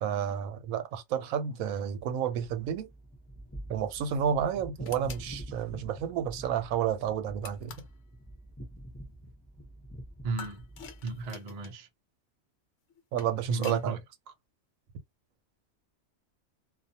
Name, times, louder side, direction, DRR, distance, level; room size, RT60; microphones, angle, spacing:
voice 1, 0.0-2.9 3.7-7.7 13.1-14.0, right 8 dB, 90° right, 1.0 m, -31 dB
sound 1, 2.4-11.3, right 1 dB, 15° left, 0.7 m, -46 dB
sound 2, 4.8-5.3 7.4-8.0 10.4-11.8 12.9-13.9, left 7 dB, 65° left, 1.0 m, -46 dB
voice 2, 10.2-10.6 11.0-11.9 13.5-14.0, right 3 dB, 65° right, 0.4 m, -34 dB
2.3 x 2.3 x 2.7 m
omnidirectional pair, 1.4 m